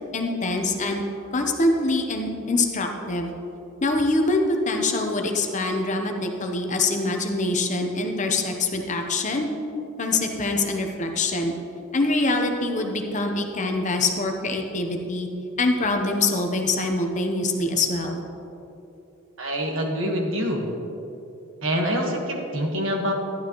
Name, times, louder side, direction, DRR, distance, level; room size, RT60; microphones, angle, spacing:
voice 1, 0.1-1.0 1.3-3.3 3.8-9.5 10.0-11.5 11.9-15.3 15.6-18.2, left 2 dB, 35° left, 3 dB, 0.8 m, -24 dB
voice 2, 19.4-20.7 21.6-23.1, equal, 70° right, 1 dB, 1.5 m, -25 dB
12.0 x 11.0 x 3.1 m, 2.8 s
head